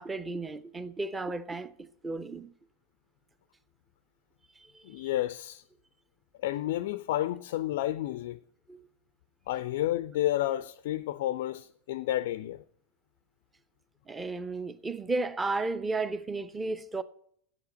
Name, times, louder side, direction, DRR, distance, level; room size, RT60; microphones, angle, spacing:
voice 1, 0.0-2.5 4.6-5.1 8.7-8.9 14.1-17.0, right 3 dB, 15° right, 0.6 m, -34 dB
voice 2, 4.8-5.6 6.4-8.4 9.5-12.6, left 14 dB, 55° left, 0.4 m, -31 dB
8.0 x 8.0 x 8.2 m
figure-of-eight pair, 90°, 0 cm